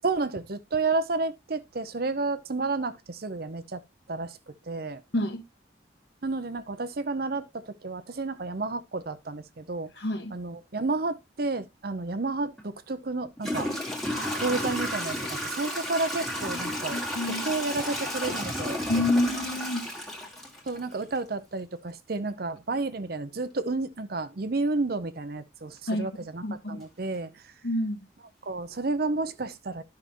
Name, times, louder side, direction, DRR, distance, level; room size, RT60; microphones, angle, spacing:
voice 1, 0.0-3.8 4.1-5.0 6.2-9.9 10.3-13.7 14.4-17.0 17.2-18.8 20.7-27.4 28.4-29.8, right 3 dB, 50° right, 0.6 m, -31 dB
voice 2, 10.0-10.3 16.5-16.6 16.9-17.4 18.9-19.9 25.9-26.1 26.4-26.8 27.6-28.0, left 1 dB, 60° left, 1.4 m, -28 dB
Toilet flush / Trickle dribble, 12.6-12.7 13.4-21.2, equal, ahead, 1.8 m, -32 dB
11.5 x 5.7 x 3.0 m
head